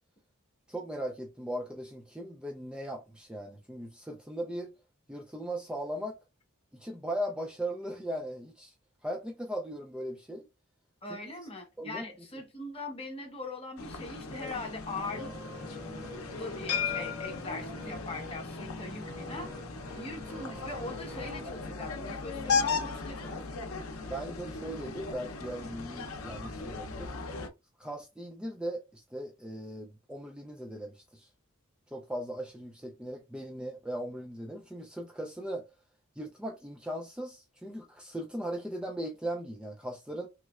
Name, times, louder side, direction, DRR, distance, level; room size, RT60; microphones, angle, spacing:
voice 1, 0.7-4.7 5.1-6.2 6.7-8.7 9.0-10.5 11.1-11.2 11.8-12.1 24.1-27.1 27.8-31.3 31.9-35.7 36.2-40.3, right 1 dB, 5° right, 0.4 m, -38 dB
voice 2, 11.0-15.3 16.3-19.5 20.0-23.9, left 2 dB, 30° left, 1.0 m, -41 dB
sound 1, 13.8-27.5, left 4 dB, 85° left, 0.6 m, -36 dB
sound 2, 15.1-21.5, left 1 dB, 40° right, 1.8 m, -47 dB
3.2 x 3.0 x 2.3 m
head